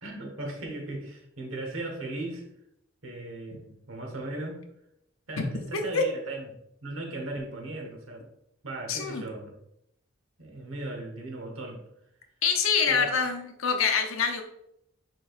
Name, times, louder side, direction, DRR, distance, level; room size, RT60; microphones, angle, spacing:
voice 1, 0.0-2.4 3.0-4.6 5.3-6.5 6.8-8.2 8.6-9.5 10.4-11.8 12.9-13.0, right 2 dB, 80° right, 2 dB, 1.2 m, -37 dB
voice 2, 5.7-6.0 8.9-9.2 12.4-14.4, left 6 dB, 85° left, 4 dB, 0.8 m, -25 dB
4.8 x 4.5 x 2.5 m, 0.78 s
head